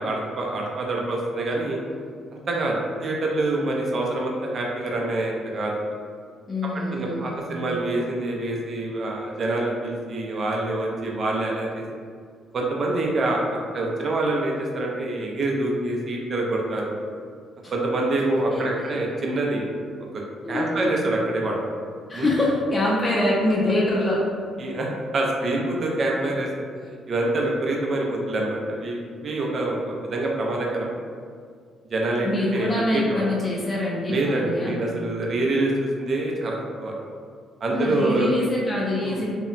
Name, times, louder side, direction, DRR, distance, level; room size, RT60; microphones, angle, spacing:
voice 1, 0.0-1.8 2.5-5.7 6.9-11.8 12.5-17.0 17.7-19.7 20.1-21.6 22.1-22.3 24.6-26.5 27.1-30.9 31.9-33.2 34.1-36.9 37.6-38.3 39.0-39.2, right 2 dB, 50° right, -1 dB, 0.5 m, -26 dB
voice 2, 6.5-7.4 17.6-17.7 18.5-19.3 20.4-20.8 22.1-24.3 32.2-34.7 37.7-39.3, left 1 dB, 35° left, -5 dB, 0.4 m, -25 dB
2.8 x 2.1 x 2.5 m, 2.1 s
supercardioid pair, 75°, 0 cm